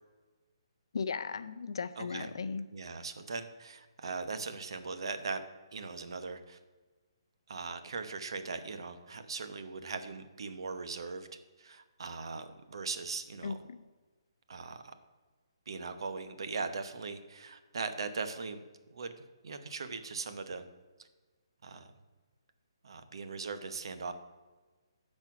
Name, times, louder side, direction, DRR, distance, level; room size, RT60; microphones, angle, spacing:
voice 1, 0.9-2.6 13.4-13.8, left 5 dB, 60° left, 13 dB, 0.6 m, -36 dB
voice 2, 2.0-2.3 2.7-5.4 5.7-6.6 7.5-11.3 11.6-13.6 14.5-14.9 15.7-18.6 18.9-20.6 21.6-21.9 22.8-24.1, right 4 dB, 60° right, 9 dB, 0.9 m, -39 dB
12.0 x 4.4 x 5.9 m, 1.3 s
hypercardioid pair, 170°, 3 cm